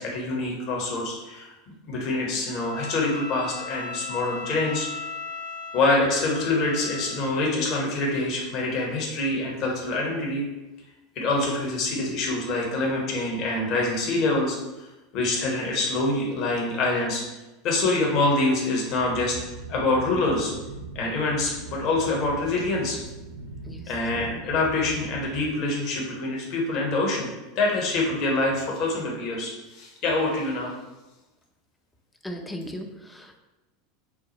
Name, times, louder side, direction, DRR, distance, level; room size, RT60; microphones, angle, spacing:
voice 1, 0.0-1.5 1.9-4.9 5.7-10.5 11.1-14.6 15.1-17.2 17.6-19.4 19.7-20.5 20.9-23.0 23.9-27.3 27.5-30.7, left 2 dB, 50° left, -2 dB, 1.1 m, -25 dB
Bowed string instrument, 2.5-7.3, left 4 dB, 80° left, 1.3 m, -37 dB
sound 1, 19.0-25.6, right 4 dB, 65° right, 0.4 m, -40 dB
voice 2, 32.2-33.4, equal, 10° left, 3 dB, 0.6 m, -37 dB
4.7 x 2.1 x 4.1 m, 1.1 s
hypercardioid pair, 85°, 0 cm